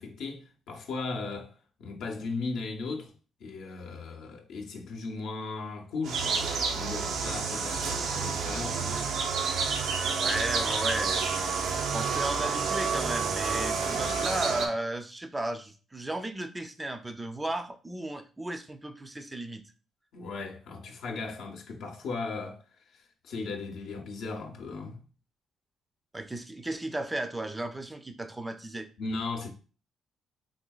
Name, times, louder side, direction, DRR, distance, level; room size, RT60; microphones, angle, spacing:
voice 1, 0.0-1.5 1.8-3.1 3.4-6.4 6.7-9.1 20.1-22.6 22.9-25.0 29.0-29.5, left 3 dB, 80° left, 0.6 m, -37 dB
sound 1, 6.0-14.7, right 5 dB, 75° right, 0.5 m, -29 dB
voice 2, 10.2-11.6 11.9-19.6 26.1-28.9, right 1 dB, 15° right, 0.4 m, -35 dB
3.8 x 2.7 x 2.3 m
cardioid pair, 90°, 0 cm